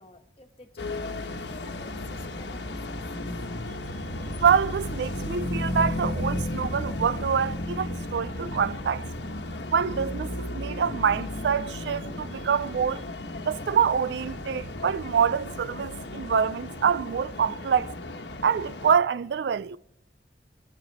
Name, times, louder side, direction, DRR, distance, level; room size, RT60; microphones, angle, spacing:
voice 1, 0.0-2.8 3.2-3.3, left 2 dB, 35° left, 1.5 m, -50 dB
sound 1, 0.8-18.9, left 1 dB, 85° left, 1.2 m, -34 dB
voice 2, 4.4-9.1 9.7-13.1 13.5-17.9 18.4-19.8, right 7 dB, 75° right, 0.4 m, -26 dB
22.0 x 10.5 x 4.2 m
head